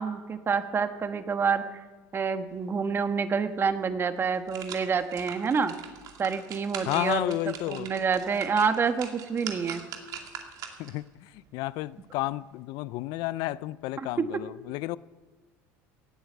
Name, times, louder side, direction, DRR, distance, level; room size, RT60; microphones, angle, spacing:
voice 1, 0.0-1.8 2.1-5.7 6.2-7.3 7.7-9.8 14.0-14.1, right 5 dB, 30° right, 1.3 m, -28 dB
sound 1, 3.6-3.7 4.2-11.0 11.5-11.6, right 7 dB, 60° right, 2.3 m, -42 dB
voice 2, 6.9-7.9 10.8-11.0 11.5-15.0, left 17 dB, 70° left, 0.4 m, -31 dB
18.0 x 8.1 x 7.9 m
supercardioid pair, 100°, 7 cm